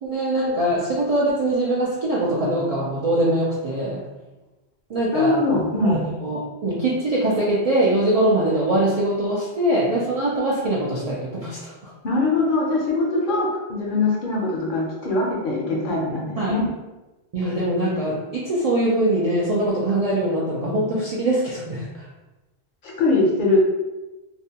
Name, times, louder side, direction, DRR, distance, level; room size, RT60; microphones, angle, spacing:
voice 1, 0.0-4.1 4.9-5.4 5.8-11.9 16.4-16.6 17.3-22.0, right 1 dB, 60° right, -6 dB, 0.4 m, -22 dB
voice 2, 5.1-6.0 12.0-16.7 22.8-23.6, left 2 dB, 60° left, -2 dB, 0.6 m, -22 dB
2.4 x 2.1 x 2.7 m, 1.1 s
omnidirectional pair, 1.1 m